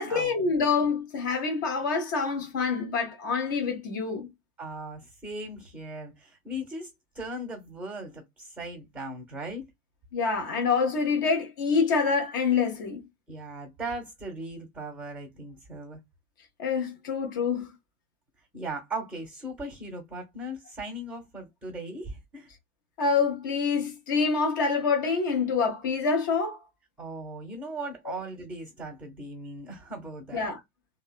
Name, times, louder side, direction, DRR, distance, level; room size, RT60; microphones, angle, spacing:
voice 1, 0.0-4.3 10.1-13.0 16.6-17.7 23.0-26.6 30.3-30.6, left 5 dB, 15° left, 0.3 m, -26 dB
voice 2, 4.6-6.9 7.1-9.7 13.3-16.0 18.5-22.5 27.0-30.5, right 1 dB, 5° right, 0.7 m, -38 dB
2.7 x 2.1 x 2.2 m
figure-of-eight pair, 105°, 44 cm